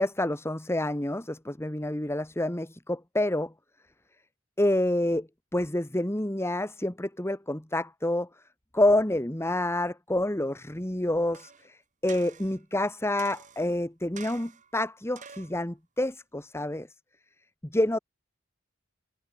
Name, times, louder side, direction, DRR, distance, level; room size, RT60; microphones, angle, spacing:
voice 1, 0.0-3.5 4.6-8.3 8.7-16.9 17.6-18.0, left 1 dB, 15° left, 1.5 m, -28 dB
sound 1, 11.3-11.7 12.1-12.6 13.2-13.8 14.2-14.7 15.2-15.6 16.2-16.3, right 6 dB, 40° right, 2.0 m, -47 dB
head